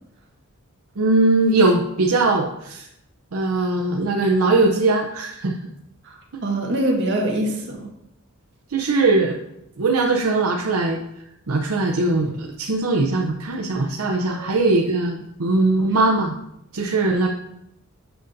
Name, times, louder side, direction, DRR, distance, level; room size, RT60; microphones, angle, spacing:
voice 1, 1.0-2.9 3.3-5.5 8.7-9.4 9.8-11.0 11.5-16.3 16.7-17.3, right 3 dB, 75° right, 0 dB, 0.6 m, -20 dB
voice 2, 6.0-7.9 14.3-14.7, right 1 dB, 55° right, 0 dB, 1.5 m, -25 dB
7.9 x 6.6 x 2.6 m, 0.80 s
head